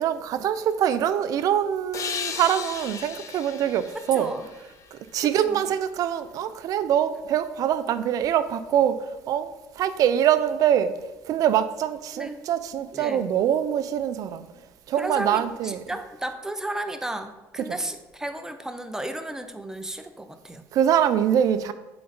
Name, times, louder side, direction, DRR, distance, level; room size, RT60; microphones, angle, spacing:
voice 1, 0.0-4.3 4.9-8.9 9.3-9.5 9.8-10.9 11.2-14.5 14.9-15.8 20.7-21.7, right 10 dB, 60° right, 0.5 m, -24 dB
sound 1, 1.9-5.4, left 7 dB, 50° left, 0.6 m, -36 dB
voice 2, 4.1-4.5 5.4-5.6 12.2-12.4 12.9-13.3 15.0-20.6, right 1 dB, 10° right, 0.6 m, -33 dB
7.6 x 3.9 x 4.0 m
supercardioid pair, 90°, 7 cm